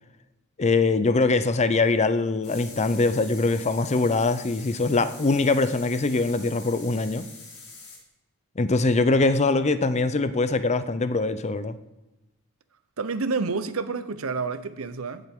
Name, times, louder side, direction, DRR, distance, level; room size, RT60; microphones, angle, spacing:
voice 1, 0.6-7.3 8.6-11.8, left 3 dB, 30° left, 0.6 m, -23 dB
sound 1, 2.4-8.0, left 4 dB, 80° left, 4.5 m, -44 dB
voice 2, 13.0-15.2, right 4 dB, 70° right, 0.8 m, -29 dB
16.0 x 7.5 x 3.7 m
head